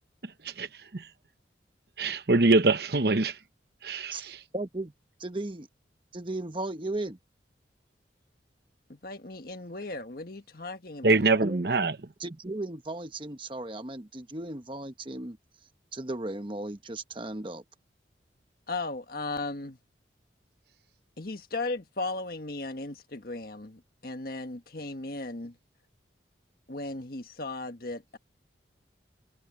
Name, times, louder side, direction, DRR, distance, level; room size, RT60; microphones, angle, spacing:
voice 1, 0.2-1.1 2.0-3.4 3.8-4.4 11.0-12.0, right 3 dB, 60° right, 1.0 m, -24 dB
voice 2, 4.5-4.9 5.2-5.7 6.1-7.2 11.4-11.9 12.2-15.4 15.9-17.6, right 2 dB, 30° right, 1.1 m, -36 dB
voice 3, 8.9-11.2 18.7-19.8 21.2-25.5 26.7-28.2, left 2 dB, 55° left, 1.6 m, -36 dB
head